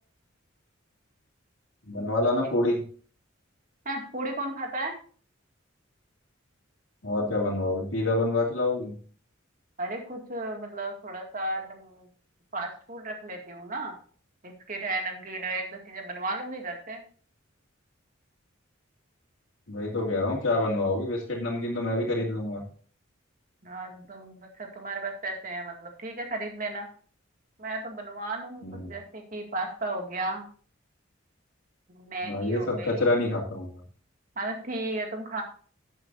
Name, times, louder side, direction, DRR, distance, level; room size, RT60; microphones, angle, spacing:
voice 1, 1.9-2.8 7.0-9.0 19.7-22.6 28.6-28.9 32.2-33.8, left 2 dB, 85° left, -4 dB, 2.6 m, -27 dB
voice 2, 3.8-4.9 9.8-12.1 12.5-14.0 14.4-17.0 23.6-26.9 27.6-30.5 31.9-32.9 34.4-35.4, right 2 dB, 45° right, 2 dB, 2.3 m, -34 dB
13.5 x 8.9 x 2.7 m, 0.44 s
head